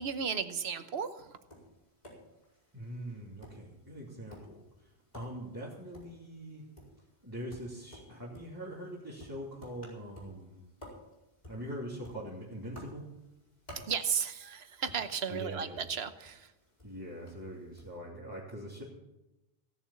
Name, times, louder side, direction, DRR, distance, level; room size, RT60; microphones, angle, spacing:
voice 1, 0.0-1.4 13.9-16.5, right 6 dB, 70° right, 11 dB, 1.1 m, -34 dB
Tap, 1.2-18.0, equal, 40° left, 4.7 m, -55 dB
voice 2, 2.7-6.7 7.2-10.7 11.5-13.1 15.3-15.8 16.8-18.8, equal, 20° right, -6 dB, 2.8 m, -43 dB
16.5 x 7.1 x 8.5 m, 0.96 s
omnidirectional pair, 1.1 m